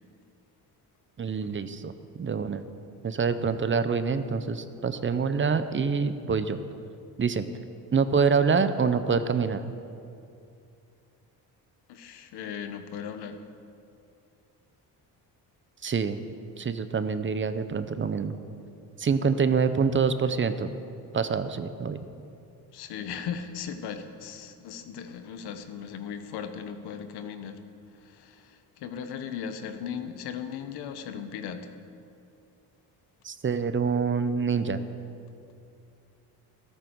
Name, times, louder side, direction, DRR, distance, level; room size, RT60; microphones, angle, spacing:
voice 1, 1.2-1.9 2.2-2.6 3.0-6.6 7.2-7.4 7.9-9.6 15.8-16.2 16.6-18.3 19.0-20.7 21.1-22.0 33.2-34.8, right 5 dB, 30° right, 11 dB, 0.7 m, -26 dB
voice 2, 11.9-13.4 22.7-27.6 28.0-31.7, left 7 dB, 85° left, 8 dB, 1.1 m, -37 dB
13.5 x 13.5 x 4.6 m, 2.5 s
cardioid pair, 100°, 38 cm